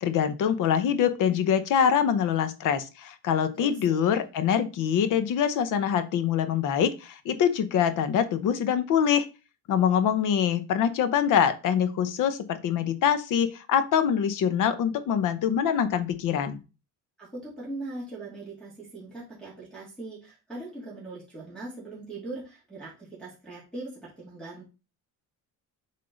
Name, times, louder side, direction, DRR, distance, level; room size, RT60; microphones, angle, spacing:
voice 1, 0.0-9.2 9.7-16.6, left 8 dB, 55° left, 11 dB, 0.8 m, -24 dB
voice 2, 3.5-4.2 17.2-24.6, right 2 dB, ahead, -10 dB, 2.5 m, -40 dB
7.6 x 3.7 x 3.9 m, 0.31 s
cardioid pair, 170°, 37 cm